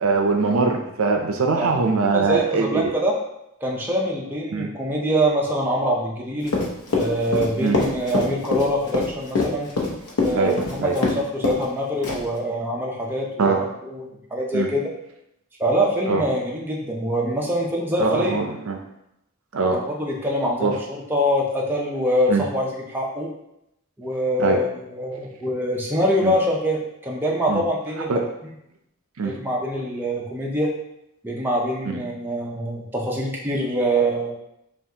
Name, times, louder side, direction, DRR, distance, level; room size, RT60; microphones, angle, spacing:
voice 1, 0.0-2.9 4.5-4.7 7.6-7.8 10.3-11.0 13.4-13.6 14.5-14.7 16.1-16.2 18.0-18.8 19.5-19.8 20.6-20.8 22.3-22.5 24.4-24.6 26.2-26.3 27.5-27.6 28.1-28.3 29.2-29.4 31.9-32.0, right 4 dB, 65° right, 3 dB, 0.5 m, -22 dB
voice 2, 2.1-3.1 3.6-6.5 6.9-9.7 10.2-14.8 15.6-18.4 20.0-23.3 24.0-28.1 29.2-30.7 31.2-34.3, equal, 10° right, -3 dB, 0.5 m, -24 dB
Run, 6.4-11.2 11.4-11.7 12.0-12.4, left 3 dB, 80° left, 0.8 m, -23 dB
5.5 x 2.4 x 2.8 m, 0.82 s
head